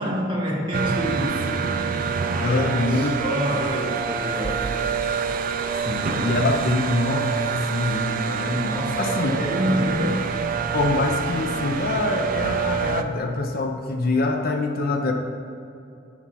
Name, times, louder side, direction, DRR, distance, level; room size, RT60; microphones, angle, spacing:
voice 1, 0.0-1.6 2.2-4.7 8.4-10.3, equal, 25° right, -5 dB, 1.6 m, -27 dB
sound 1, 0.7-13.0, right 6 dB, 45° right, 0.4 m, -26 dB
voice 2, 2.2-3.2 3.5-3.7 5.9-8.6 9.0-9.3 10.7-15.1, left 2 dB, 50° left, 3 dB, 0.6 m, -25 dB
8.2 x 6.0 x 5.7 m, 2.7 s
head